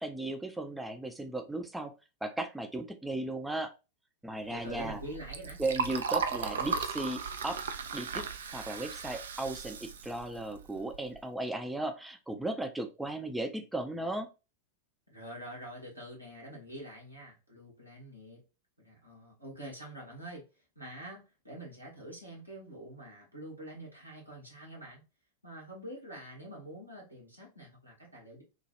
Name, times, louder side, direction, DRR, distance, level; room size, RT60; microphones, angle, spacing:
voice 1, 0.0-1.9 2.2-3.7 4.2-5.0 5.6-7.6 7.9-14.3, right 2 dB, 5° right, 0.5 m, -36 dB
Liquid, 4.5-11.2, right 5 dB, 65° right, 0.4 m, -37 dB
voice 2, 4.5-5.6 15.1-18.4 18.8-20.5 20.7-25.0 25.4-28.4, right 1 dB, 85° right, 1.3 m, -46 dB
3.0 x 2.3 x 2.8 m
figure-of-eight pair, 90°, 0 cm